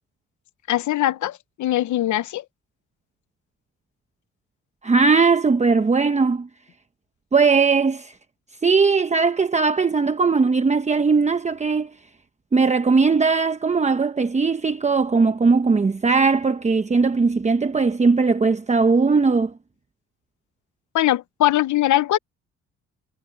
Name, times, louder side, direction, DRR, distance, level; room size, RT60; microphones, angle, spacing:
voice 1, 0.7-2.4 20.9-22.2, left 14 dB, 70° left, 1.0 m, -21 dB
voice 2, 4.8-6.5 7.3-8.1 8.6-11.9 12.5-19.5, right 4 dB, 25° right, 1.0 m, -19 dB
cardioid pair, 90°, 30 cm